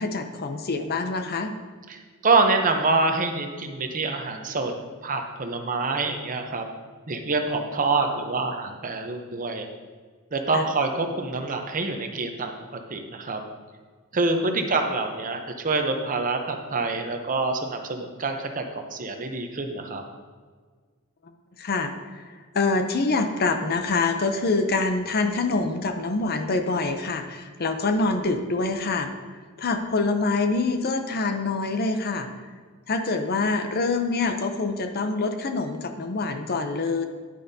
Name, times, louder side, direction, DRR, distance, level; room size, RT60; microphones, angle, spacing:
voice 1, 0.0-1.5 10.5-10.6 14.4-14.6 21.6-21.9 22.5-29.1 29.6-32.3 32.9-37.0, left 3 dB, 45° left, 6 dB, 0.6 m, -25 dB
voice 2, 1.9-4.7 5.0-6.7 7.1-9.7 10.3-13.4 14.1-20.0, right 3 dB, 40° right, 5 dB, 0.8 m, -26 dB
10.0 x 8.8 x 2.8 m, 1.5 s
head